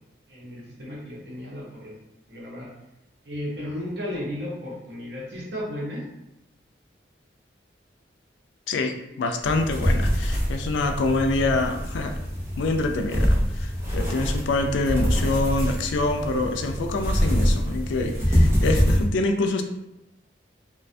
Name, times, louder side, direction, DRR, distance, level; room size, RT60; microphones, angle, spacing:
voice 1, 0.3-1.9 2.3-2.7 3.2-6.0, left 1 dB, 70° right, -5 dB, 0.8 m, -34 dB
voice 2, 8.7-12.1 12.6-19.6, left 2 dB, 90° left, 5 dB, 0.3 m, -26 dB
sound 1, 9.4-19.0, equal, 15° right, 0.5 m, -24 dB
2.4 x 2.2 x 2.5 m, 0.90 s
head